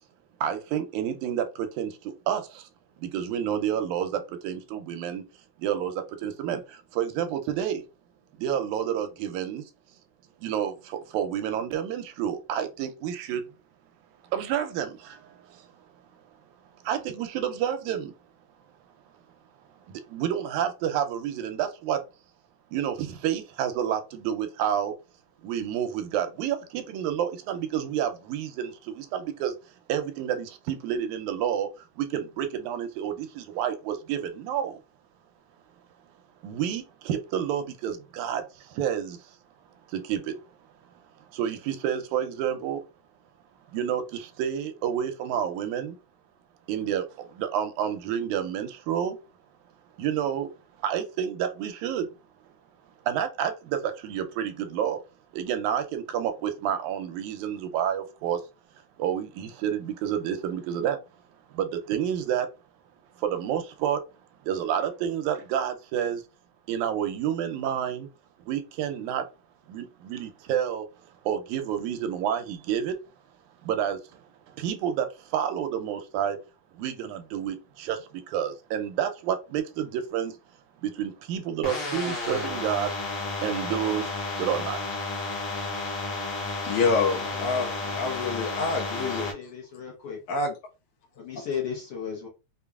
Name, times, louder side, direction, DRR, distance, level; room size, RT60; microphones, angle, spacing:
voice 1, 0.4-2.7 3.0-5.2 5.6-7.8 8.4-9.6 10.4-13.5 14.3-15.7 16.8-18.1 19.9-22.0 22.7-25.0 25.4-29.6 29.9-34.8 36.4-39.2 39.9-40.4 41.3-42.8 43.7-46.0 46.7-49.2 50.0-50.5 50.8-52.1 53.0-55.0 55.3-58.4 59.0-61.0 61.5-62.5 63.2-64.0 64.4-66.2 66.7-68.1 68.5-69.3 69.7-70.9 71.3-73.0 73.6-74.0 74.5-76.4 76.8-80.4 80.8-82.9 83.4-84.1 84.4-84.8, right 9 dB, 85° right, 2.0 m, -29 dB
sound 1, 81.6-89.3, left 3 dB, 55° left, 1.5 m, -32 dB
voice 2, 86.6-89.3 90.3-90.5, left 4 dB, 90° left, 2.3 m, -27 dB
voice 3, 87.2-88.3 89.3-90.2 91.1-92.3, left 7 dB, 70° left, 1.3 m, -36 dB
5.2 x 2.3 x 2.3 m
omnidirectional pair, 3.4 m